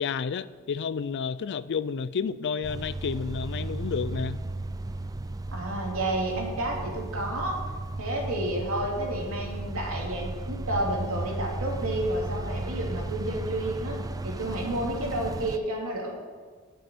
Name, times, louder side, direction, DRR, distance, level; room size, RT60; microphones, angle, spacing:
voice 1, 0.0-4.4, left 6 dB, 55° left, 16 dB, 0.4 m, -30 dB
sound 1, 2.6-15.6, right 2 dB, 15° right, 0.4 m, -35 dB
voice 2, 5.5-7.6 8.0-14.0 14.2-16.1, right 1 dB, 70° right, -1 dB, 2.8 m, -30 dB
10.5 x 6.9 x 8.4 m, 1.5 s
head